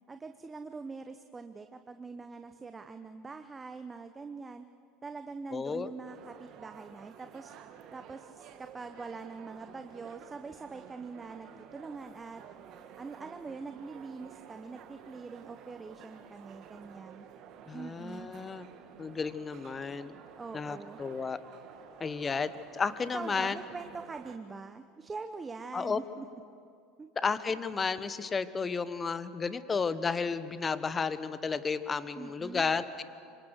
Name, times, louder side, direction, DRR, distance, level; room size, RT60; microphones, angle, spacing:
voice 1, 0.1-4.6 5.0-7.5 7.9-12.4 13.0-17.3 17.7-18.3 20.3-21.0 23.1-26.3 27.0-27.1 32.2-32.6, right 4 dB, 20° right, 8 dB, 1.0 m, -43 dB
voice 2, 5.5-5.9 17.7-18.7 19.0-20.1 20.5-21.4 22.0-23.6 25.7-26.0 27.2-33.0, left 5 dB, 25° left, 13 dB, 1.2 m, -32 dB
sound 1, 6.1-24.4, right 8 dB, 50° right, 1.7 m, -52 dB
26.5 x 25.5 x 6.5 m, 2.4 s
hypercardioid pair, 80°, 0 cm